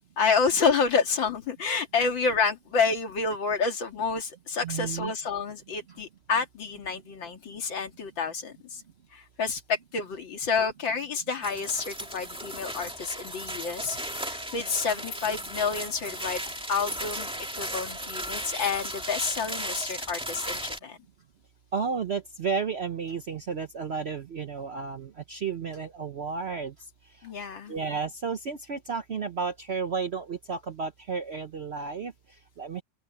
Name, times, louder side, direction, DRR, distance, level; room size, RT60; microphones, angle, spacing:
voice 1, 0.2-8.8 9.1-16.4 16.7-17.3 17.6-21.0 27.2-27.7, left 5 dB, 85° left, 3.0 m, -29 dB
voice 2, 4.6-5.1 5.9-6.0 21.7-26.7 27.2-27.3 27.7-32.8, right 5 dB, 55° right, 0.7 m, -32 dB
sound 1, 11.4-20.8, equal, 5° right, 2.0 m, -36 dB
open air
omnidirectional pair, 2.0 m